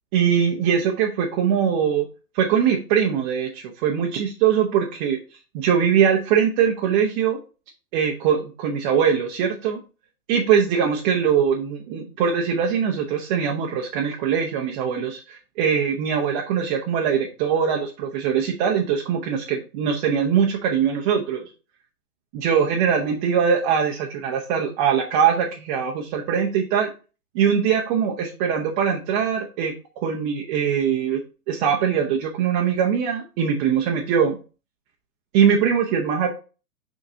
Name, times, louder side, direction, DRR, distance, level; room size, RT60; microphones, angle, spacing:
voice 1, 0.1-2.1 2.3-5.2 5.5-7.4 7.9-9.8 10.3-21.5 22.3-26.9 27.3-31.2 31.5-34.4 35.3-36.3, right 7 dB, 30° right, 1 dB, 1.0 m, -22 dB
6.6 x 5.0 x 2.8 m, 0.33 s
figure-of-eight pair, 120°, 46 cm